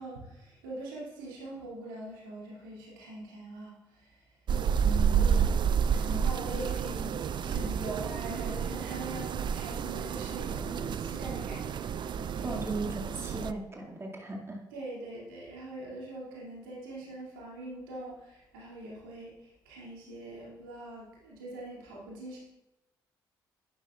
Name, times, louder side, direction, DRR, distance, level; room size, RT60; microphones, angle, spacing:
voice 1, 0.0-4.5 4.8-5.6 5.9-12.6 14.7-22.4, right 2 dB, 80° right, -5 dB, 2.7 m, -42 dB
sound 1, 4.5-13.5, right 7 dB, 45° right, 0.4 m, -30 dB
voice 2, 12.4-14.6, right 2 dB, 25° right, -2 dB, 2.3 m, -37 dB
11.5 x 10.5 x 2.5 m, 0.94 s
figure-of-eight pair, 45°, 11 cm